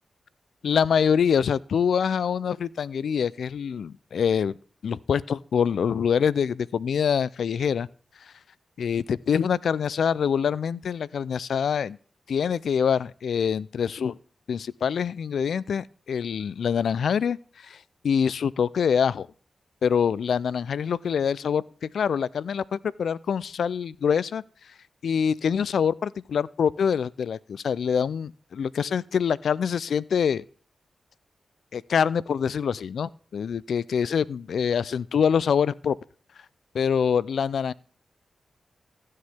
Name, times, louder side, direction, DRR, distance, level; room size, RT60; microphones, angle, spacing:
voice 1, 0.6-4.6 4.8-7.9 8.8-12.0 12.3-14.2 14.5-17.4 17.6-17.8 18.0-19.3 19.8-24.4 25.0-30.4 31.7-36.0 36.7-37.7, left 7 dB, 80° left, 0.4 m, -25 dB
15.5 x 6.7 x 3.5 m
supercardioid pair, 45°, 0 cm